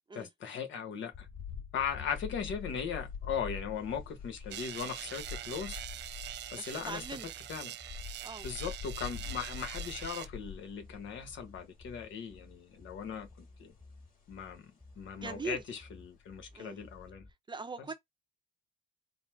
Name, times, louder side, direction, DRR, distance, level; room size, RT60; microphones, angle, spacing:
voice 1, 0.1-1.3 1.7-5.8 6.5-7.0 7.5-7.7 8.4-13.7 14.3-17.3 17.8-17.9, left 7 dB, 75° left, 1.1 m, -39 dB
sound 1, 1.1-17.1, left 7 dB, 45° left, 2.4 m, -46 dB
sound 2, 1.3-17.3, left 2 dB, 10° left, 1.2 m, -56 dB
sound 3, 4.5-10.3, right 12 dB, 60° right, 0.4 m, -43 dB
voice 2, 6.5-7.3 8.2-8.5 15.1-15.6 16.5-16.8 17.5-17.9, right 3 dB, 25° right, 0.7 m, -41 dB
4.1 x 2.1 x 4.3 m
cardioid pair, 90°, 20 cm